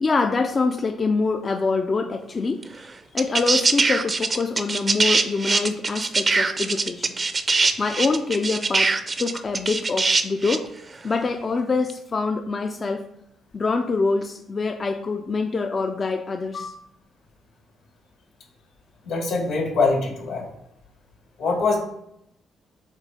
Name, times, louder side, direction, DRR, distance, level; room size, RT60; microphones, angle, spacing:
voice 1, 0.0-2.8 3.1-7.1 7.8-10.7 11.0-13.1 13.5-16.7, left 4 dB, 35° left, 5 dB, 0.4 m, -25 dB
sound 1, 2.6-2.7 3.2-10.7 11.9-12.0, right 4 dB, 35° right, 0.5 m, -22 dB
voice 2, 19.0-20.5 21.4-21.8, left 3 dB, 80° left, -1 dB, 2.5 m, -23 dB
7.3 x 2.7 x 5.2 m, 0.78 s
cardioid pair, 90°, 0 cm